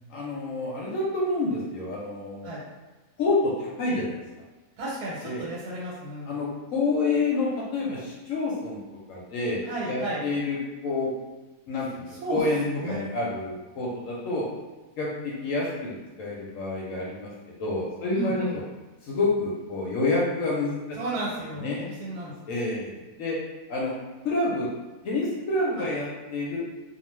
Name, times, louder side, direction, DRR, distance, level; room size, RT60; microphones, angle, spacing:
voice 1, 0.1-2.5 3.2-4.2 5.2-5.5 6.3-8.8 9.1-10.6 10.8-11.1 11.7-14.4 15.0-18.4 19.0-21.0 21.6-21.9 22.5-23.4 23.7-24.0 24.2-24.7 25.0-26.6, left 2 dB, 70° left, -5 dB, 0.9 m, -28 dB
voice 2, 4.8-6.4 9.6-10.2 12.1-13.0 18.1-18.6 21.0-22.3 25.8-25.9, right 1 dB, 85° right, -5 dB, 1.2 m, -33 dB
2.4 x 2.3 x 3.1 m, 1.1 s
omnidirectional pair, 1.6 m